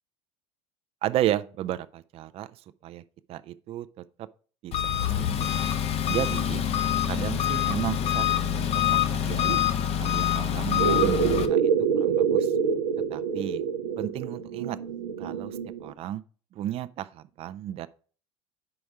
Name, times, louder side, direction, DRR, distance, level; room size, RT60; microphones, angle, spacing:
voice 1, 1.0-3.0 3.3-4.3 4.6-4.8 5.0-5.5 6.1-6.6 7.1-9.6 9.9-12.5 13.1-13.6 14.0-14.8 15.2-16.2 16.5-17.9, right 13 dB, 40° right, 0.4 m, -33 dB
Engine, 4.7-11.5, left 10 dB, 40° left, 0.6 m, -25 dB
sound 1, 10.8-15.9, right 7 dB, 85° right, 0.6 m, -26 dB
5.1 x 4.8 x 4.8 m
hypercardioid pair, 75°, 16 cm